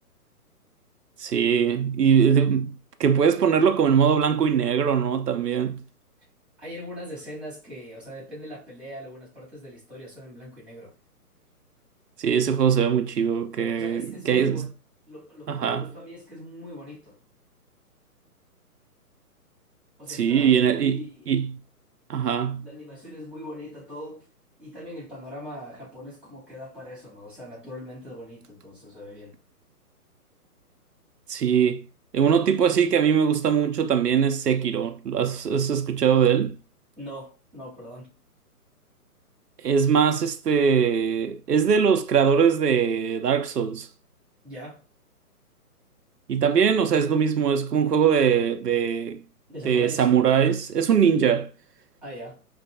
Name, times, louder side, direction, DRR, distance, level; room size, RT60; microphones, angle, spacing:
voice 1, 1.2-2.7 3.0-5.8 12.2-14.7 15.5-15.8 20.1-21.0 21.3-21.5 22.1-22.6 31.3-31.8 32.1-36.6 39.6-43.9 46.3-49.2 49.6-51.5, right 7 dB, 85° right, 0.7 m, -21 dB
voice 2, 6.6-10.9 13.8-14.7 15.1-17.2 20.0-21.3 22.6-24.3 24.6-29.4 37.0-38.1 44.4-44.8 49.5-50.1 52.0-52.4, equal, ahead, 2.4 m, -41 dB
5.3 x 3.3 x 2.6 m
hypercardioid pair, 140°, 46 cm